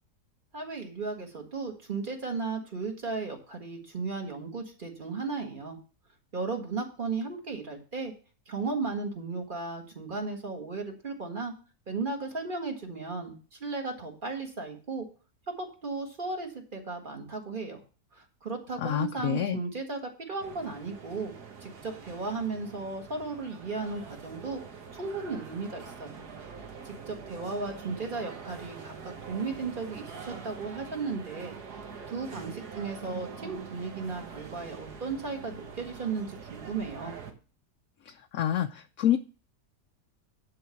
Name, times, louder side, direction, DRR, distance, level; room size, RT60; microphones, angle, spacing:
voice 1, 0.5-5.8 6.3-8.1 8.5-11.5 11.9-15.1 15.5-17.8 18.1-21.3 21.6-24.6 25.0-26.2 26.8-31.6 32.1-37.2, right 4 dB, 30° right, 2 dB, 1.8 m, -35 dB
voice 2, 18.8-19.6 38.0-39.2, left 11 dB, 65° left, 6 dB, 1.0 m, -28 dB
sound 1, 20.4-37.3, right 6 dB, 70° right, 1.8 m, -44 dB
11.0 x 3.8 x 7.0 m, 0.36 s
omnidirectional pair, 1.8 m